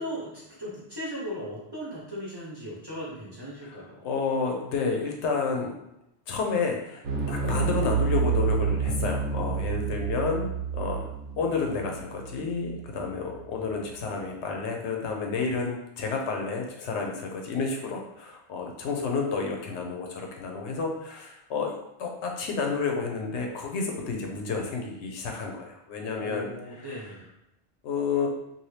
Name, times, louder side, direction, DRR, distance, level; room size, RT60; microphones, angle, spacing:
voice 1, 0.0-4.0 26.2-27.3, equal, 25° right, -7 dB, 0.7 m, -37 dB
voice 2, 3.6-5.7 6.3-10.5 10.7-11.1 11.4-21.7 22.0-26.5 26.8-27.1 27.8-28.3, left 4 dB, 80° left, 1 dB, 0.9 m, -30 dB
sound 1, 7.0-13.5, right 6 dB, 85° right, 1.0 m, -29 dB
2.7 x 2.5 x 3.1 m, 0.85 s
omnidirectional pair, 1.2 m